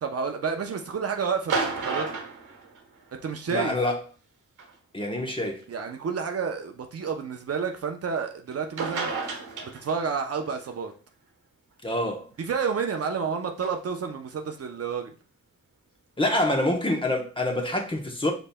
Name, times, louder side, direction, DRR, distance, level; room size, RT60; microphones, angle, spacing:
voice 1, 0.0-2.2 3.2-3.8 5.7-9.1 9.6-10.9 12.4-15.1, right 6 dB, 50° right, 0.7 m, -30 dB
sound 1, 1.4-3.3 4.6-4.7 5.6-5.7 8.5-8.6 8.8-10.2 13.6-13.7, right 4 dB, 80° right, 1.2 m, -31 dB
voice 2, 3.5-4.0 4.9-5.6 11.8-12.3 16.2-18.3, left 1 dB, 15° left, 1.0 m, -26 dB
5.4 x 4.0 x 2.2 m
cardioid pair, 70°, 31 cm